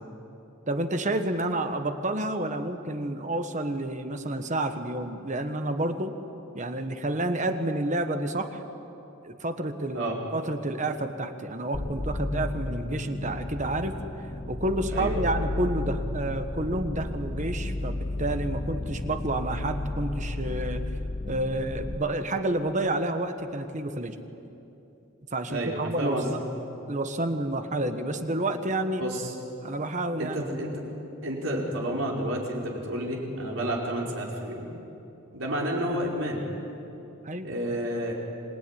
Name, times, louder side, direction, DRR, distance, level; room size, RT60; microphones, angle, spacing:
voice 1, 0.7-6.2 6.5-8.6 9.2-14.0 14.5-20.8 21.3-24.2 25.3-26.4 26.9-29.0 29.6-30.6 35.5-35.6 37.2-37.5, right 1 dB, 35° right, 7 dB, 1.3 m, -29 dB
sound 1, 11.7-22.0, left 2 dB, 30° left, 0.8 m, -33 dB
voice 2, 14.9-15.3 25.5-26.4 29.0-29.3 30.2-30.7 31.2-34.7 35.3-36.4 37.4-38.1, right 1 dB, 70° right, -2 dB, 5.3 m, -30 dB
26.5 x 19.5 x 10.0 m, 2.9 s
head